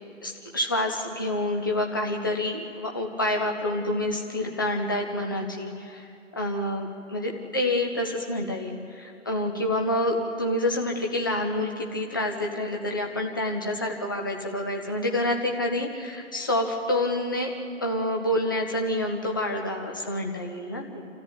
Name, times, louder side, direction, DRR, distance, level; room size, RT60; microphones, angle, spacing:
voice 1, 0.2-6.1 6.4-6.9 7.1-17.5 17.8-21.1, left 1 dB, 15° left, 1 dB, 1.1 m, -28 dB
28.5 x 13.5 x 9.7 m, 2.5 s
figure-of-eight pair, 160°, 39 cm